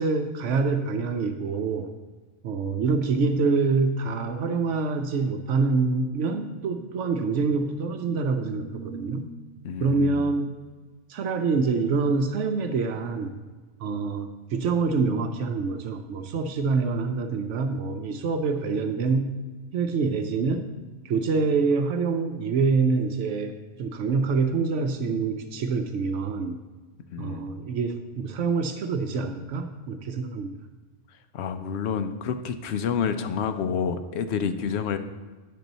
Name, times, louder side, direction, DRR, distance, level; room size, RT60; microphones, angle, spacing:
voice 1, 0.0-1.9 2.4-9.3 9.8-10.5 11.1-13.3 13.8-19.4 19.7-20.7 21.0-26.6 27.2-30.5, right 4 dB, 80° right, 6 dB, 1.0 m, -26 dB
voice 2, 9.6-10.2 27.1-27.5 31.3-35.0, left 6 dB, 65° left, 8 dB, 0.9 m, -28 dB
10.0 x 6.7 x 4.0 m, 1.3 s
omnidirectional pair, 1.2 m